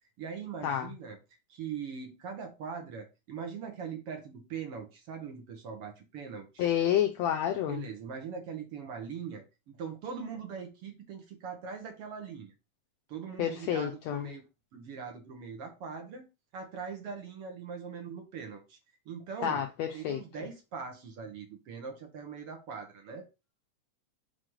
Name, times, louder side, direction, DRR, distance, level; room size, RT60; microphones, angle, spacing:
voice 1, 0.2-1.2 1.5-6.7 7.7-12.5 13.1-14.4 14.7-16.3 16.5-18.8 19.1-19.6 19.9-23.2, right 6 dB, 55° right, 2.0 m, -41 dB
voice 2, 6.6-7.8 13.4-14.3 19.4-20.2, left 10 dB, 85° left, 1.5 m, -29 dB
6.3 x 4.8 x 3.8 m
omnidirectional pair, 3.7 m